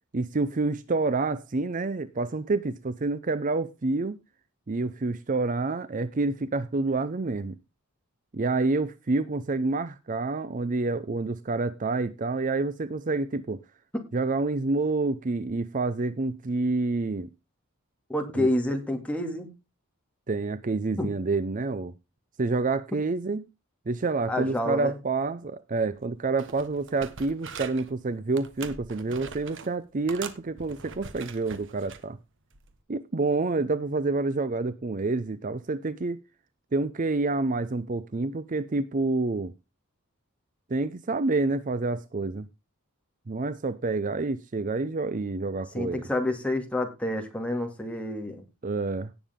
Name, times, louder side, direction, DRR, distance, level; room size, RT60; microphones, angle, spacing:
voice 1, 0.1-4.2 4.7-7.5 8.3-13.6 14.1-17.3 18.3-18.5 20.3-21.9 22.4-23.4 23.9-32.2 32.9-36.2 36.7-39.5 40.7-42.4 43.3-46.0 48.6-49.1, right 3 dB, 35° right, 0.5 m, -28 dB
voice 2, 18.1-19.5 21.0-21.1 24.3-25.0 45.7-48.4, left 1 dB, 5° left, 2.4 m, -28 dB
sound 1, 26.0-26.1 26.4-27.9 28.3-29.7 30.1-32.0 32.5-32.7, right 5 dB, 60° right, 1.3 m, -42 dB
17.5 x 7.2 x 3.6 m
head